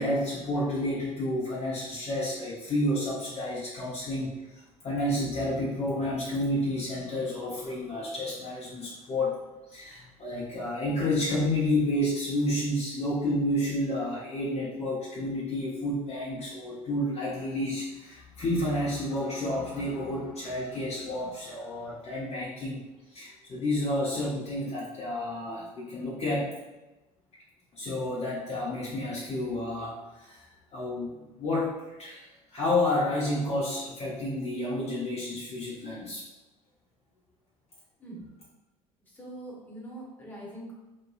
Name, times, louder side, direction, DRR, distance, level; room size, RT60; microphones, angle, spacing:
voice 1, 0.0-9.4 9.7-22.8 23.1-26.5 27.7-30.5 30.7-32.2 32.5-36.2, left 1 dB, 35° left, -7 dB, 0.7 m, -30 dB
voice 2, 39.0-40.7, right 1 dB, 10° left, -5 dB, 1.1 m, -43 dB
3.0 x 2.2 x 2.3 m, 1.1 s
hypercardioid pair, 65°, 19 cm